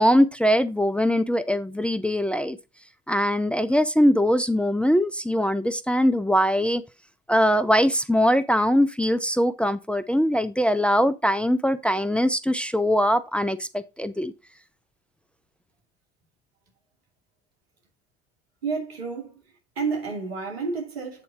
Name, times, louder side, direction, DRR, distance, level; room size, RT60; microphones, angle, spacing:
voice 1, 0.0-2.6 3.1-6.8 7.3-14.3, equal, 5° left, 0.6 m, -22 dB
voice 2, 18.6-19.4 19.8-21.2, right 4 dB, 90° right, 2.6 m, -30 dB
8.2 x 4.2 x 5.0 m
hypercardioid pair, 70°, 30 cm